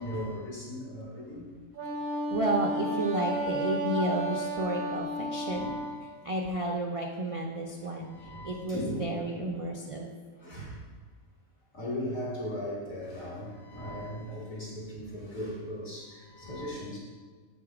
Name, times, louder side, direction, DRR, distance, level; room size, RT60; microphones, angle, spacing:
voice 1, 0.0-1.4 5.4-6.0 8.1-9.4 10.4-10.7 11.7-17.0, left 1 dB, 65° left, -6 dB, 3.0 m, -38 dB
Wind instrument woodwind instrument, 1.7-6.0, right 1 dB, 85° right, 1.4 m, -32 dB
voice 2, 2.3-5.7 6.2-8.1 8.4-10.2 10.6-10.8, right 1 dB, 45° right, 0 dB, 0.4 m, -32 dB
8.0 x 5.4 x 4.8 m, 1.4 s
omnidirectional pair, 1.5 m